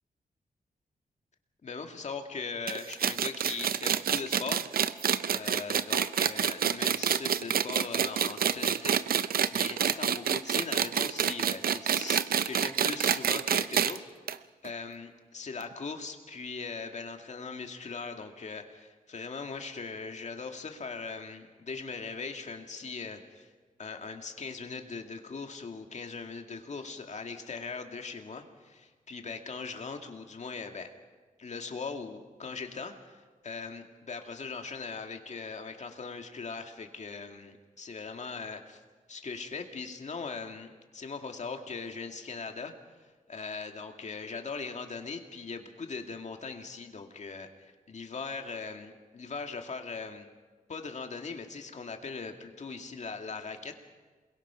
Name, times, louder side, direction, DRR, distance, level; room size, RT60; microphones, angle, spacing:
voice 1, 1.6-4.6 5.3-9.2 9.5-14.1 14.6-23.5 23.8-30.9 31.4-38.8 39.1-42.7 43.3-50.3 50.7-53.7, left 4 dB, 50° left, 4 dB, 2.1 m, -40 dB
sound 1, 2.7-14.0 14.3-14.4 14.6-14.7 15.6-15.7, right 8 dB, 80° right, 0.6 m, -27 dB
28.0 x 21.5 x 5.7 m, 1.4 s
wide cardioid pair, 105°, 15 cm